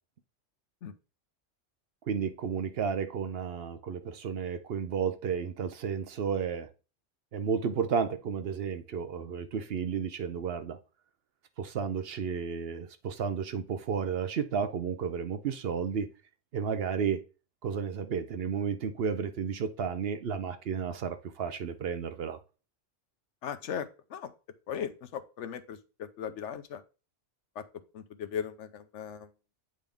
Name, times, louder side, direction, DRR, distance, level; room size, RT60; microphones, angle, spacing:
voice 1, 2.1-6.7 7.3-10.8 11.6-16.1 16.5-17.2 17.6-22.4, right 6 dB, 60° right, 0.8 m, -32 dB
voice 2, 23.4-24.3 24.7-26.8 27.6-27.7 27.9-29.3, left 8 dB, 80° left, 1.0 m, -38 dB
8.5 x 3.8 x 3.5 m
omnidirectional pair, 1.2 m